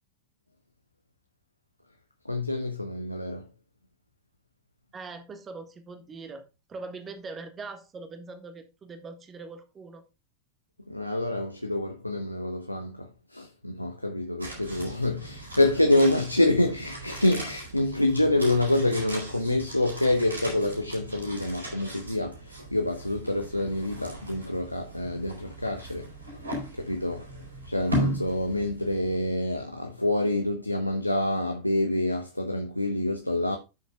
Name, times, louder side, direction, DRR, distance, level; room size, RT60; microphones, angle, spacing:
voice 1, 2.2-3.5 10.9-26.4 26.7-27.3 27.6-33.6, left 1 dB, 85° left, 1.0 m, -27 dB
voice 2, 4.9-6.4 6.7-10.0, right 3 dB, 20° right, 1.7 m, -41 dB
sound 1, 14.4-29.6 29.9-30.0, equal, 80° right, 4.0 m, -37 dB
12.0 x 7.0 x 2.4 m
figure-of-eight pair, 90°, 0 cm